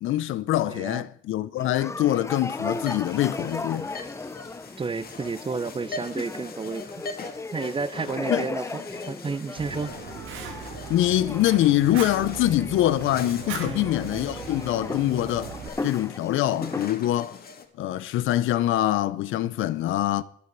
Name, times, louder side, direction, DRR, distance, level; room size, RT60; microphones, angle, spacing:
voice 1, 0.0-3.9 8.3-8.4 10.9-15.5 15.8-17.4 17.8-20.2, left 14 dB, 80° left, 0.7 m, -24 dB
voice 2, 0.7-1.0 4.8-6.9 7.5-8.8 9.1-9.9 13.6-13.9, right 4 dB, 25° right, 0.6 m, -31 dB
sound 1, 1.6-16.9, left 3 dB, 15° left, 0.6 m, -37 dB
sound 2, 2.4-17.7, left 4 dB, 50° left, 1.7 m, -43 dB
Fire, 9.6-15.7, right 6 dB, 85° right, 2.1 m, -38 dB
9.4 x 8.2 x 9.1 m
cardioid pair, 90°, 20 cm